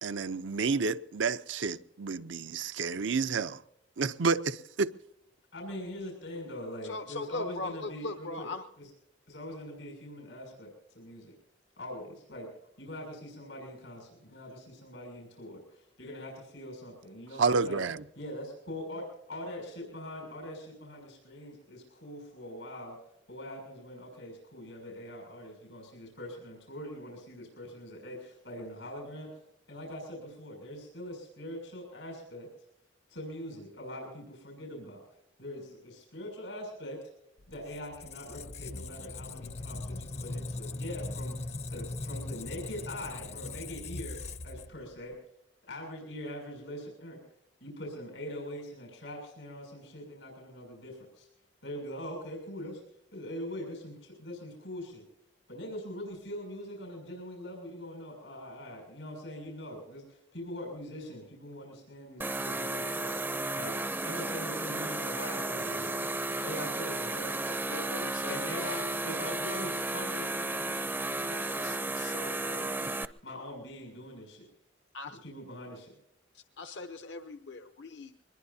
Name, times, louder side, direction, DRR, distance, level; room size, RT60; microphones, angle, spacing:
voice 1, 0.0-3.6 4.0-4.9 17.4-18.0, right 4 dB, 85° right, 0.6 m, -30 dB
voice 2, 5.5-8.5 9.3-11.3 11.8-12.5 12.8-17.8 18.1-23.0 23.3-29.3 29.7-32.5 33.1-35.0 35.4-37.0 37.5-45.1 45.6-47.2 47.6-51.3 51.6-52.8 53.1-55.0 55.5-63.7 64.0-65.9 66.4-67.4 68.3-72.9 73.2-74.4 75.2-75.9, left 1 dB, 90° left, 6.7 m, -42 dB
voice 3, 6.8-8.7 67.4-68.8 71.6-72.4 74.9-75.2 76.3-78.3, left 2 dB, 70° left, 0.8 m, -40 dB
Squeak, 37.4-45.1, left 2 dB, 35° left, 0.6 m, -40 dB
sound 1, 62.2-73.1, right 2 dB, 10° right, 0.5 m, -33 dB
23.5 x 21.0 x 2.8 m
head